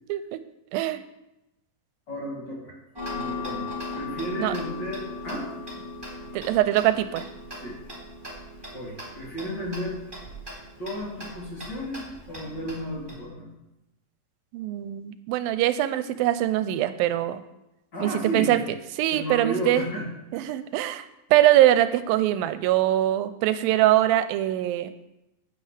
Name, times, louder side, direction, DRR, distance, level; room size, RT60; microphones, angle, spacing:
voice 1, 0.1-0.4 0.7-1.0 4.4-4.5 6.3-7.3 14.5-17.4 18.0-18.6 19.0-19.9 20.3-21.1 21.3-24.9, right 13 dB, 90° right, 12 dB, 2.4 m, -22 dB
voice 2, 2.1-2.8 3.1-5.5 7.6-7.8 8.7-10.0 10.8-13.5 17.9-18.6 19.1-20.1 20.3-20.5, equal, 30° left, -5 dB, 3.4 m, -33 dB
Tick-tock, 2.9-13.2, left 2 dB, 5° right, 2.8 m, -38 dB
15.0 x 8.9 x 3.4 m, 0.92 s
omnidirectional pair, 4.1 m